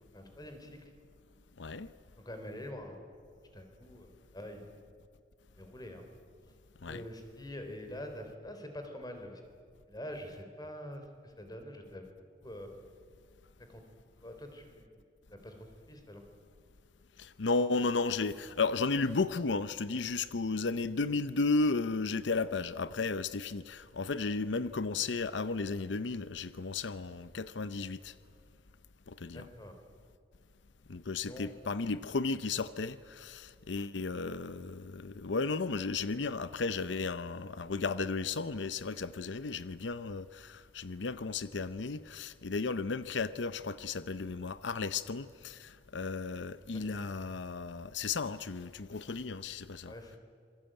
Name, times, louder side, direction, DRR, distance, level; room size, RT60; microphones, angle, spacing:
voice 1, 0.1-0.9 2.2-3.0 3.5-4.6 5.6-6.0 6.9-9.4 9.9-12.8 13.7-13.8 14.2-14.9 15.3-16.2 29.3-29.8 31.2-31.5 46.7-47.1 49.9-50.2, left 1 dB, 20° left, 3.7 m, -45 dB
voice 2, 1.6-1.9 6.8-7.0 17.2-28.1 29.1-29.5 30.9-49.9, left 4 dB, 90° left, 0.7 m, -34 dB
27.0 x 22.0 x 9.0 m
head